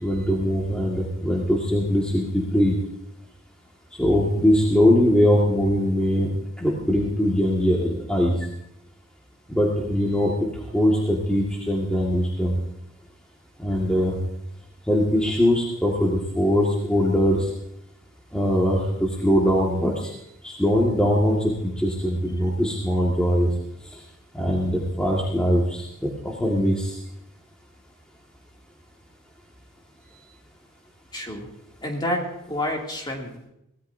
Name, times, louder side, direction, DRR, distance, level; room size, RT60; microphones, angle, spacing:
voice 1, 0.0-2.7 4.0-6.3 6.6-8.4 9.5-10.3 10.7-12.5 13.6-14.1 14.9-17.4 18.3-18.8 19.2-19.9 20.4-23.5 24.4-25.8 26.4-26.9, equal, 5° left, -4 dB, 1.9 m, -21 dB
voice 2, 31.1-31.5 31.8-33.4, left 1 dB, 20° left, 0 dB, 2.7 m, -29 dB
23.5 x 17.5 x 2.7 m, 0.81 s
head